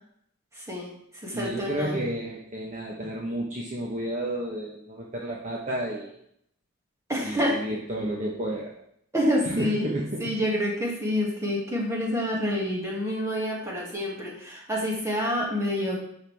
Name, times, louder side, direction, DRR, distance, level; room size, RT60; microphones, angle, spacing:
voice 1, 0.6-0.9 1.2-2.0 7.1-7.6 9.1-9.9 10.2-16.0, equal, 15° right, -3 dB, 2.2 m, -27 dB
voice 2, 1.3-6.1 7.2-8.7 9.4-10.3, right 1 dB, 35° right, -2 dB, 1.1 m, -31 dB
10.0 x 6.7 x 3.5 m, 0.72 s
head